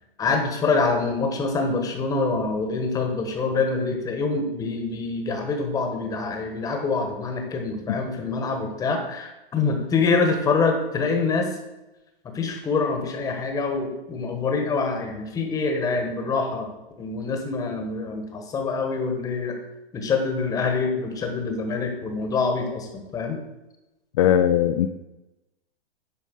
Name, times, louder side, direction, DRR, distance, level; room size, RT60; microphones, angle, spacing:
voice 1, 0.2-11.5 12.3-16.7 17.0-19.6 19.9-23.4, left 4 dB, 10° left, 4 dB, 1.2 m, -25 dB
voice 2, 24.1-24.9, left 10 dB, 35° left, 8 dB, 0.4 m, -19 dB
9.2 x 5.2 x 6.5 m, 0.99 s
hypercardioid pair, 160°, 30 cm